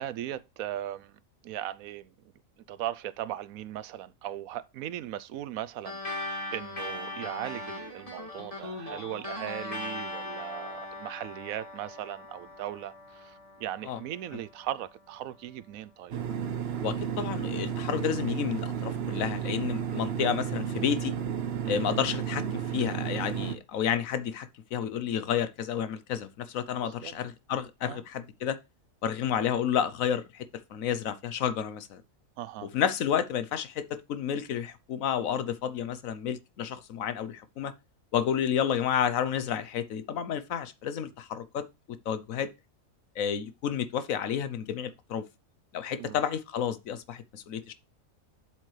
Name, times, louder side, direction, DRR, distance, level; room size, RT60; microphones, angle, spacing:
voice 1, 0.0-2.1 2.7-16.2 21.6-21.9 26.8-27.1 27.8-28.0 32.4-32.7 46.0-46.2, right 12 dB, 85° right, 1.1 m, -38 dB
sound 1, 5.9-14.7, left 2 dB, 25° left, 2.4 m, -39 dB
sound 2, 16.1-23.6, right 8 dB, 55° right, 1.0 m, -32 dB
voice 2, 16.8-21.2 21.7-28.6 29.0-30.4 30.7-32.0 32.7-37.7 38.1-42.5 43.2-45.2 45.7-47.7, left 8 dB, 80° left, 1.2 m, -31 dB
7.7 x 7.4 x 3.3 m
omnidirectional pair, 1.4 m